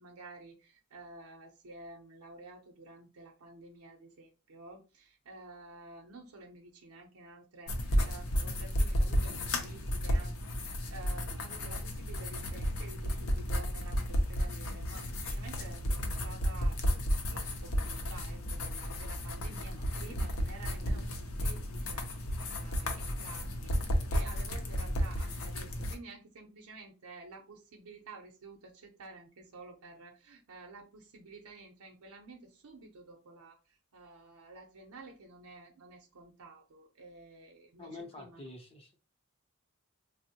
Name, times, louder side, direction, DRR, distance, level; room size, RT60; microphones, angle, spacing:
voice 1, 0.0-10.4 10.6-22.1 22.5-38.5, right 3 dB, 90° right, 0.6 m, -51 dB
sound 1, 7.7-25.9, equal, 70° left, 0.6 m, -33 dB
voice 2, 37.8-39.0, left 2 dB, 25° left, 0.6 m, -47 dB
3.5 x 2.0 x 2.8 m
head